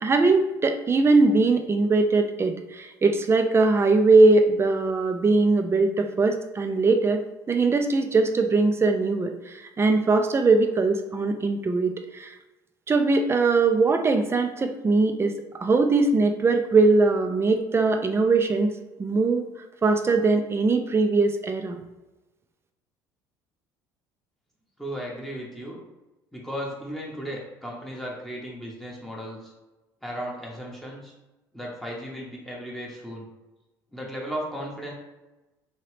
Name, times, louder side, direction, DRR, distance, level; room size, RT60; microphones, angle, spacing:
voice 1, 0.0-7.2 7.5-12.3 12.9-15.3 15.6-18.7 19.0-19.5 19.8-21.8, right 3 dB, 25° right, 6 dB, 0.5 m, -21 dB
voice 2, 24.8-25.8 26.3-29.5 30.0-31.1 31.5-33.3 33.9-34.9, equal, 5° left, -4 dB, 0.9 m, -35 dB
2.9 x 2.8 x 3.2 m, 1.1 s
hypercardioid pair, 70°, 10 cm